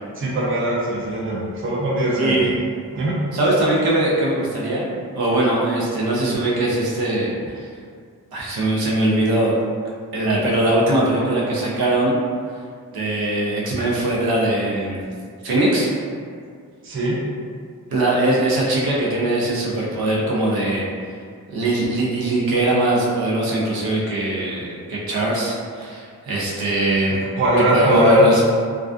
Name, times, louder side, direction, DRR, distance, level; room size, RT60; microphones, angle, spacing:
voice 1, 0.2-2.5 2.9-3.2 16.8-17.2 27.3-28.3, right 1 dB, 35° right, -6 dB, 0.5 m, -20 dB
voice 2, 2.2-2.5 3.3-4.9 5.1-7.7 8.3-9.6 10.1-12.1 12.9-15.0 15.4-15.9 17.9-20.8 21.5-27.2 27.6-28.4, right 1 dB, 85° right, -4 dB, 0.6 m, -21 dB
2.4 x 2.3 x 2.4 m, 2.1 s
wide cardioid pair, 140°, 36 cm